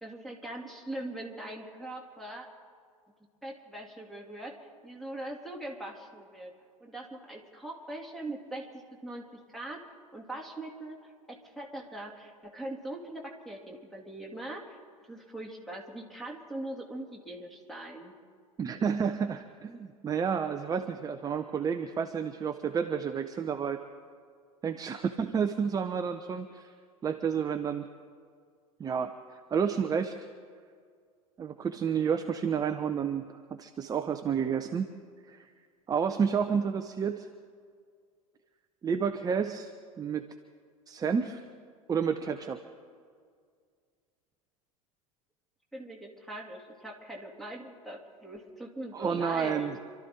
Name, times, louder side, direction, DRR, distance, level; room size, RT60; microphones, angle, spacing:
voice 1, 0.0-2.5 3.4-6.5 6.8-9.8 10.1-14.8 15.1-18.1 45.7-49.7, right 1 dB, ahead, 0 dB, 2.9 m, -41 dB
voice 2, 18.6-23.8 24.6-26.7 27.0-27.9 28.8-29.1 29.5-30.2 31.4-34.9 35.3-35.5 35.9-37.3 38.8-39.7 40.0-40.3 40.9-41.5 41.9-42.6 48.9-49.8, right 6 dB, 20° right, 7 dB, 0.8 m, -30 dB
27.5 x 13.0 x 3.8 m, 2.1 s
figure-of-eight pair, 80°, 18 cm